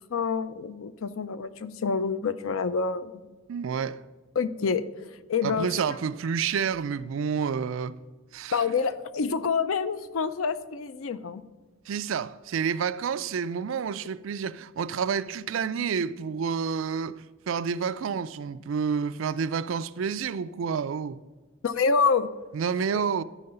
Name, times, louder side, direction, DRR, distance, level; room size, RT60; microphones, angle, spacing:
voice 1, 0.1-3.1 4.4-4.8 5.3-5.7 8.5-11.4 21.6-22.3 22.9-23.0, left 5 dB, 80° left, 0.5 m, -27 dB
voice 2, 3.5-4.0 5.4-8.0 8.3-8.6 11.9-21.2 22.5-23.2, right 6 dB, 70° right, 0.4 m, -29 dB
13.5 x 4.7 x 5.5 m
head